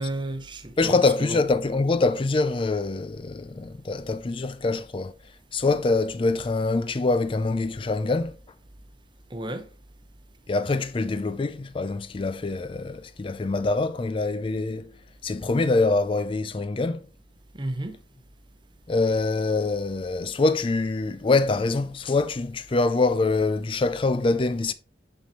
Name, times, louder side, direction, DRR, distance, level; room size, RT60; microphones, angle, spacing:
voice 1, 0.0-1.4 9.3-9.7 17.6-18.0, right 1 dB, 25° right, 0.9 m, -32 dB
voice 2, 0.8-5.1 5.5-8.4 10.5-15.0 15.2-17.1 18.9-24.7, left 3 dB, 30° left, 0.4 m, -24 dB
7.1 x 5.4 x 3.1 m
head